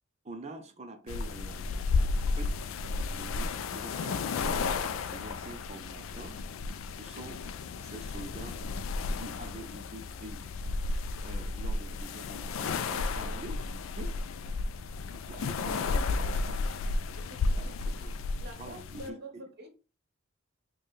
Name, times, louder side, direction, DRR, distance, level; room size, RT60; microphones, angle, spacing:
voice 1, 0.2-1.7 2.0-2.5 2.9-4.8 5.1-6.4 6.9-7.4 7.8-8.6 9.1-10.4 11.2-14.1 15.1-16.8 17.5-18.1 18.6-19.4, right 2 dB, 35° right, 0.6 m, -46 dB
sound 1, 1.1-19.1, left 3 dB, 80° left, 0.3 m, -33 dB
voice 2, 17.1-17.8 18.4-19.7, right 1 dB, 50° right, 0.9 m, -46 dB
4.5 x 2.2 x 3.1 m
head